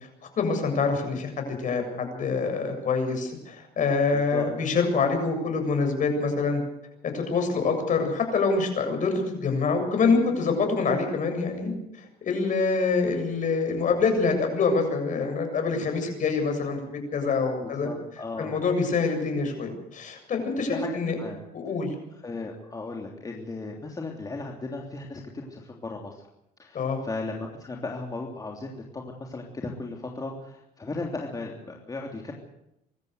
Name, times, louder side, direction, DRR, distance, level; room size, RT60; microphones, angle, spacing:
voice 1, 0.4-6.6 7.1-17.9 18.4-21.2 21.5-21.9 26.7-27.0, left 4 dB, 50° left, 5 dB, 7.5 m, -26 dB
voice 2, 4.1-4.5 17.6-18.6 20.6-21.4 22.1-26.3 26.6-32.3, left 3 dB, 20° left, 0 dB, 3.3 m, -36 dB
25.0 x 13.5 x 8.1 m, 0.83 s
cardioid pair, 110°, 17 cm